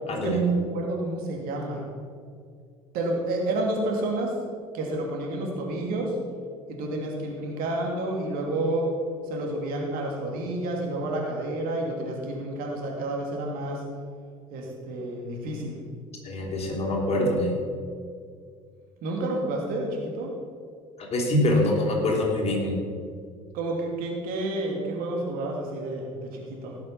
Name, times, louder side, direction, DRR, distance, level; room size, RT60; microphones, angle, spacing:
voice 1, 0.2-1.8 2.9-4.4 4.7-6.2 6.7-8.9 9.2-13.8 14.5-15.8 19.0-20.3 23.5-26.7, right 2 dB, 55° right, 0 dB, 2.7 m, -29 dB
voice 2, 16.2-17.6 21.0-22.8, left 1 dB, 35° left, -1 dB, 3.4 m, -24 dB
17.5 x 6.7 x 5.7 m, 2.2 s
figure-of-eight pair, 60°, 18 cm